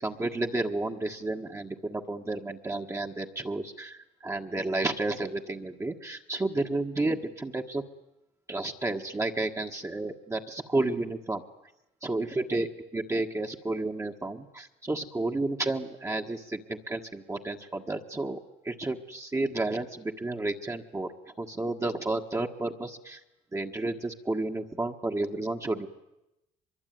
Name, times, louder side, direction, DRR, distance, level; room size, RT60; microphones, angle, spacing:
voice 1, 0.0-7.8 8.5-11.4 12.0-18.4 18.6-21.1 21.4-23.2 23.5-25.9, right 2 dB, 15° right, 2 dB, 1.6 m, -31 dB
23.5 x 23.0 x 9.4 m, 0.92 s
cardioid pair, 110°, 17 cm